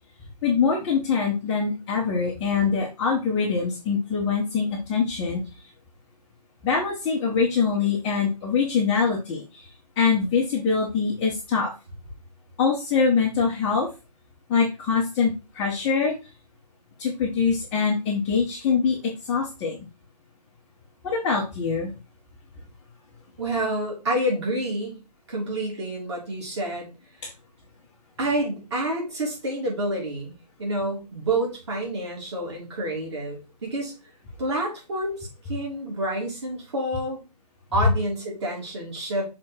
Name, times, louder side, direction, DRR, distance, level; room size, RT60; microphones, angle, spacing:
voice 1, 0.4-5.4 6.6-9.7 10.0-11.7 12.6-13.9 14.5-16.1 17.0-19.9 21.0-21.9, left 5 dB, 10° left, -4 dB, 0.5 m, -24 dB
voice 2, 23.4-25.0 25.3-26.9 28.2-33.9 34.4-37.2 37.7-39.3, right 1 dB, 40° right, -1 dB, 3.4 m, -28 dB
6.2 x 3.8 x 4.3 m, 0.29 s
hypercardioid pair, 160°, 21 cm